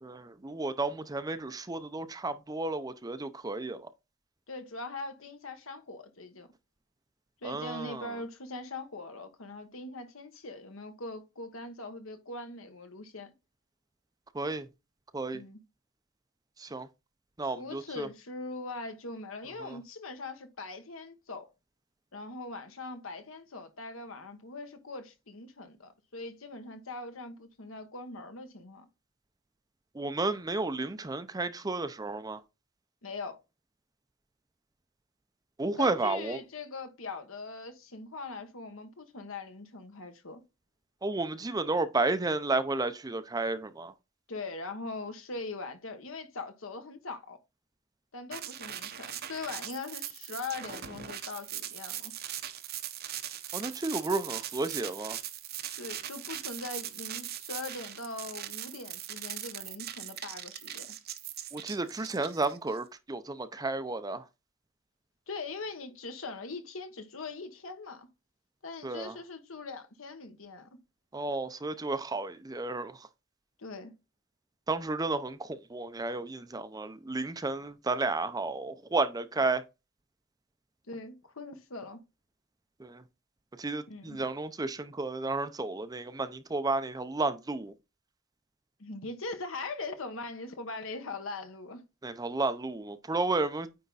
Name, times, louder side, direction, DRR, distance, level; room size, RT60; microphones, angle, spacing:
voice 1, 0.0-3.9 7.4-8.2 14.3-14.7 15.1-15.4 16.6-16.9 17.4-18.1 19.6-19.8 29.9-32.4 35.6-36.4 41.0-43.9 53.5-55.2 61.5-64.3 68.8-69.2 71.1-73.1 74.7-79.6 82.8-83.0 83.6-87.7 92.0-93.7, right 3 dB, 20° right, 0.5 m, -32 dB
voice 2, 4.5-6.5 7.4-13.3 15.3-15.6 17.4-21.5 22.1-28.9 33.0-33.4 35.8-40.4 44.3-47.4 48.1-52.1 55.8-60.9 65.3-68.1 68.6-70.7 73.6-73.9 80.9-82.0 83.9-84.2 88.8-91.8, left 3 dB, 75° left, 1.3 m, -41 dB
sound 1, 48.3-62.8, right 11 dB, 50° right, 0.8 m, -40 dB
9.3 x 3.5 x 4.1 m
head